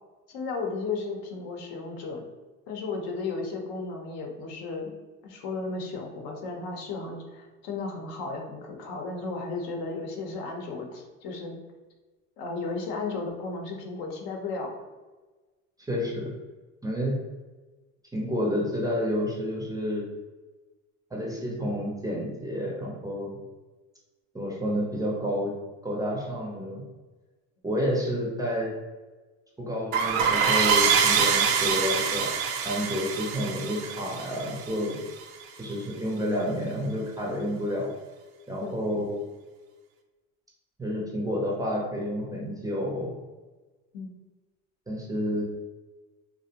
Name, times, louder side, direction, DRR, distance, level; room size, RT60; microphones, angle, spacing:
voice 1, 0.3-2.2 2.7-4.9 5.2-11.6 12.4-14.7 38.6-38.8 43.9-44.1, left 3 dB, 65° left, 1 dB, 0.7 m, -34 dB
voice 2, 15.9-16.3 16.8-17.2 18.1-20.0 21.1-23.4 24.3-25.5 25.8-26.8 27.6-28.7 29.6-32.3 32.6-35.0 35.6-37.9 38.5-39.2 40.8-43.1 44.9-45.4, equal, 10° right, -3 dB, 0.5 m, -29 dB
sound 1, 29.9-35.2, right 6 dB, 80° right, 0.5 m, -25 dB
2.5 x 2.0 x 2.7 m, 1.2 s
supercardioid pair, 110°, 39 cm